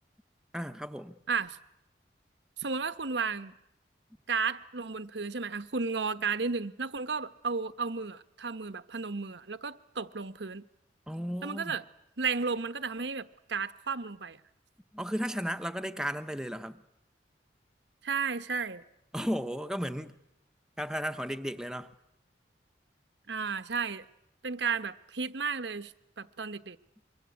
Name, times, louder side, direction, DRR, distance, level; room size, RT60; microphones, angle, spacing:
voice 1, 0.5-1.1 11.1-11.8 14.9-16.8 19.1-20.2 20.8-21.9, equal, 5° right, 0.9 m, -34 dB
voice 2, 2.6-3.5 4.3-10.6 11.4-11.8 12.2-14.4 18.0-18.8 23.3-24.0 24.4-25.9 26.2-26.8, right 5 dB, 75° right, 1.1 m, -33 dB
25.0 x 23.5 x 8.4 m
head